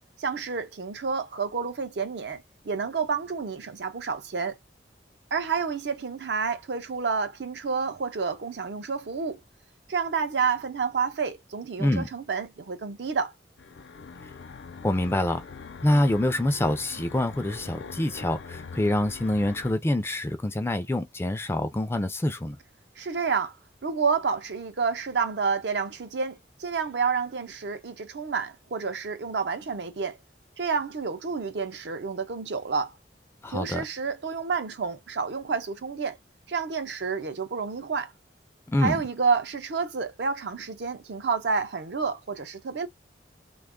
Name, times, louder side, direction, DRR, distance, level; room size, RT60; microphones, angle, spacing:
voice 1, 0.2-4.6 5.3-9.4 9.9-13.3 23.0-23.5 23.8-30.2 30.6-33.0 33.5-36.2 36.5-38.1 38.8-42.9, right 5 dB, 65° right, 0.5 m, -29 dB
sound 1, 13.6-19.7, left 5 dB, 70° left, 0.5 m, -43 dB
voice 2, 14.8-15.4 15.8-22.6 33.4-33.8 38.7-39.0, left 1 dB, 15° left, 0.4 m, -26 dB
2.8 x 2.3 x 3.6 m
head